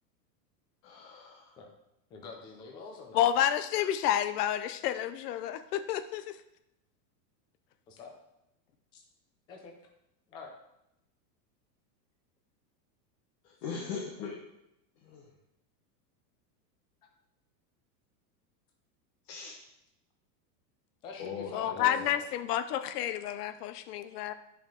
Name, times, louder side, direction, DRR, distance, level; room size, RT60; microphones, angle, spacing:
voice 1, 0.8-1.6 13.4-14.4 15.0-15.3 19.2-19.5 21.2-22.1, left 5 dB, 40° left, -1 dB, 1.2 m, -40 dB
voice 2, 2.1-3.3 7.9-8.1 8.9-9.0 9.5-9.7 10.3-10.5 21.0-22.2, left 4 dB, 10° left, 1 dB, 0.4 m, -46 dB
voice 3, 3.1-6.3 21.5-24.3, left 11 dB, 65° left, 11 dB, 0.8 m, -30 dB
9.9 x 5.3 x 3.7 m, 0.85 s
supercardioid pair, 150°, 50 cm